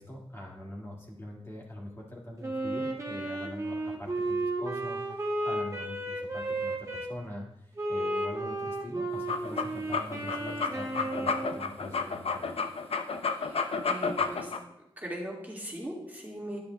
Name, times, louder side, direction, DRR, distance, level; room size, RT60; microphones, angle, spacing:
voice 1, 0.0-12.5, left 1 dB, 25° left, -3 dB, 2.0 m, -43 dB
Wind instrument woodwind instrument, 2.4-7.1 7.8-11.7, right 1 dB, 35° right, 1.8 m, -33 dB
sound 1, 9.1-14.6, left 5 dB, 75° left, 0.6 m, -31 dB
voice 2, 13.4-14.5 15.0-16.6, equal, 20° right, -3 dB, 1.9 m, -39 dB
10.0 x 10.0 x 2.3 m, 0.83 s
wide cardioid pair, 95°, 10 cm